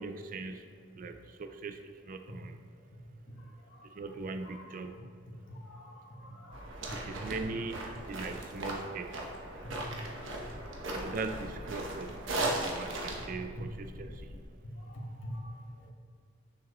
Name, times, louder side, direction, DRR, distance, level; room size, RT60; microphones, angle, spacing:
voice 1, 0.0-2.6 3.8-5.0 6.9-9.2 10.8-14.4, right 3 dB, 45° right, 7 dB, 0.4 m, -40 dB
voice 2, 3.4-5.0 5.5-7.7 10.2-10.7 13.3-13.6 14.7-15.9, equal, 80° left, -2 dB, 1.2 m, -46 dB
sound 1, 6.5-13.3, right 2 dB, 90° right, 1.1 m, -37 dB
sound 2, 9.2-14.5, left 1 dB, 35° left, 0.4 m, -49 dB
7.2 x 6.3 x 3.0 m, 2.1 s
head